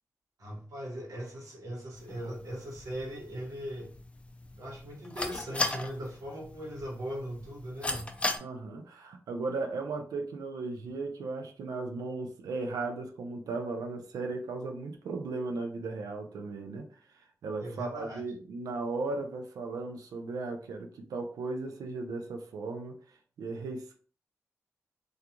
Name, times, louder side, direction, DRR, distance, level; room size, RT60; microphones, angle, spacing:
voice 1, 0.4-3.9 4.6-8.1 17.6-18.2, equal, 70° right, -2 dB, 1.1 m, -39 dB
sound 1, 2.0-8.4, left 2 dB, 20° left, 0.4 m, -38 dB
voice 2, 8.4-16.9 17.1-22.9 23.4-24.0, right 3 dB, 90° right, 5 dB, 0.4 m, -36 dB
2.3 x 2.3 x 2.8 m, 0.43 s
cardioid pair, 55°, 6 cm